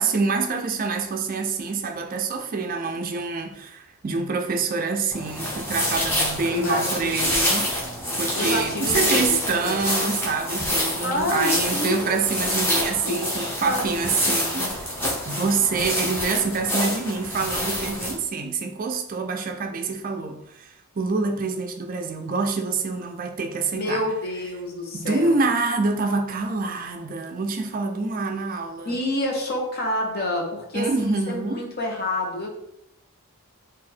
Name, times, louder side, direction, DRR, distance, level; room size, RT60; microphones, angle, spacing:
voice 1, 0.0-7.9 8.2-14.9 15.3-24.0 24.9-29.0 30.7-31.7, right 4 dB, 40° right, 0.4 m, -26 dB
sound 1, 5.1-18.1, equal, 10° left, 1.0 m, -27 dB
voice 2, 6.4-7.4 8.3-9.9 11.0-12.1 13.0-13.8 23.7-25.5 28.8-32.5, left 1 dB, 45° left, 1.0 m, -28 dB
4.2 x 2.5 x 4.2 m
head